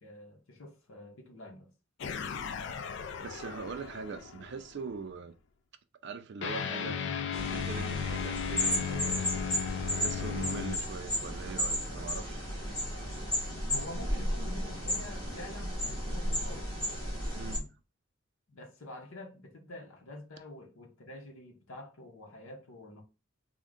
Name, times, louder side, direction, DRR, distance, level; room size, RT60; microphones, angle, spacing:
voice 1, 0.0-1.7 13.7-16.7 17.4-17.7 18.5-23.0, left 1 dB, 75° left, 0.8 m, -47 dB
sound 1, 2.0-4.8 6.4-10.8, left 7 dB, 55° left, 0.3 m, -36 dB
voice 2, 2.7-5.3 6.0-7.0 7.5-9.5 9.8-12.5 17.3-17.6, right 5 dB, 55° right, 0.4 m, -42 dB
sound 2, 7.3-17.6, equal, 20° left, 1.3 m, -34 dB
3.6 x 2.1 x 3.5 m
head